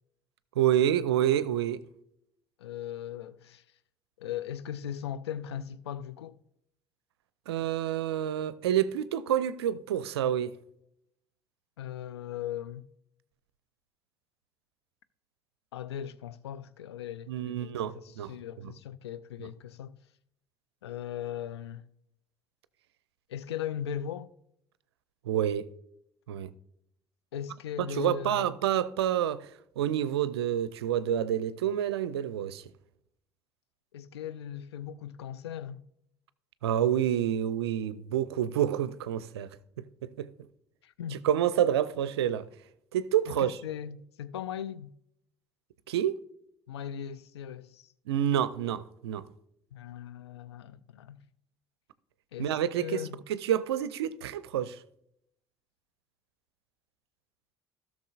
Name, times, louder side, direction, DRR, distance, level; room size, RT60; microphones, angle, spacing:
voice 1, 0.6-1.8 7.5-10.5 17.3-18.3 18.6-18.7 25.3-25.7 26.3-26.5 27.8-29.5 29.8-32.6 36.6-39.5 40.0-40.3 41.1-42.4 42.9-43.6 45.9-46.2 48.1-49.3 52.4-53.0 53.3-54.8, right 10 dB, 75° right, 0.5 m, -28 dB
voice 2, 2.6-3.6 4.2-6.4 11.8-12.9 15.7-20.0 20.8-21.8 23.3-24.3 27.3-28.5 33.9-35.8 40.8-41.2 43.3-44.9 46.7-47.9 49.7-51.2 52.3-53.2, left 9 dB, 80° left, 0.4 m, -38 dB
16.5 x 6.2 x 2.4 m
figure-of-eight pair, 55°, 14 cm